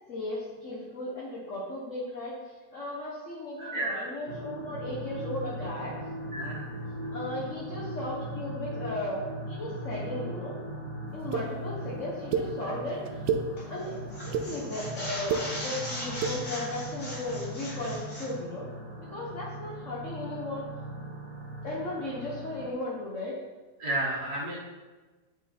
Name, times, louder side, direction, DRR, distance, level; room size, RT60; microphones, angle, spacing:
voice 1, 0.1-5.9 7.1-10.6 11.1-13.2 13.7-15.3 15.6-18.6 19.0-20.6 21.6-23.3, left 2 dB, 50° left, -5 dB, 1.5 m, -36 dB
voice 2, 3.6-4.1 6.3-6.8 23.8-24.6, right 1 dB, 65° right, -6 dB, 1.9 m, -32 dB
sound 1, 4.3-22.7, right 1 dB, 40° right, 1.1 m, -39 dB
sound 2, 11.3-11.4 12.3-12.4 13.1-13.4 14.1-14.5 15.1-15.4 16.1-16.3, right 7 dB, 85° right, 1.3 m, -28 dB
sound 3, 13.6-13.8 14.1-18.3, left 1 dB, 85° left, 3.2 m, -39 dB
9.1 x 5.5 x 4.3 m, 1.3 s
omnidirectional pair, 1.8 m